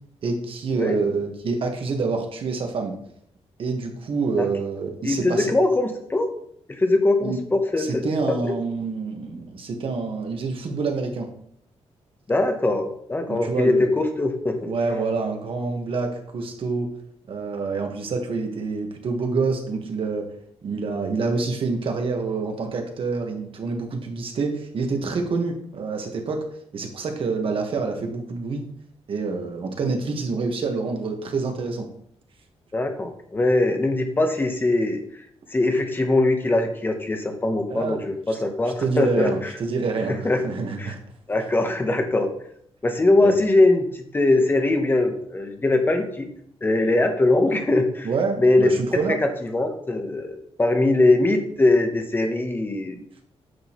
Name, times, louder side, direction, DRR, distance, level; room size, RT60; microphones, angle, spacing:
voice 1, 0.2-2.9 3.6-5.5 7.2-7.4 7.8-11.3 13.3-13.9 14.7-16.9 17.3-20.3 20.6-26.4 26.7-28.7 29.1-31.9 37.7-38.4 38.8-40.2 40.4-41.0 43.2-43.4 48.0-49.2, right 4 dB, 55° right, 3 dB, 1.4 m, -27 dB
voice 2, 5.0-6.3 6.7-8.5 12.3-14.7 32.7-35.0 35.5-39.5 40.1-40.4 40.8-40.9 41.3-42.3 42.8-46.3 46.6-48.1 48.4-48.7 49.1-53.0, left 2 dB, 20° left, 5 dB, 1.0 m, -21 dB
9.5 x 6.2 x 3.1 m, 0.68 s
wide cardioid pair, 155°, 11 cm